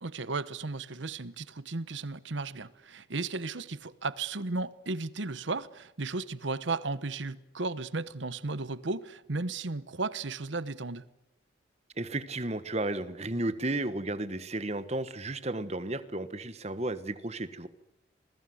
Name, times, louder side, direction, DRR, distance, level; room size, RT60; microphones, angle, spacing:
voice 1, 0.0-11.0, right 3 dB, 75° right, 1.1 m, -35 dB
voice 2, 12.0-17.7, right 2 dB, 35° right, 1.4 m, -33 dB
28.5 x 21.0 x 7.9 m
head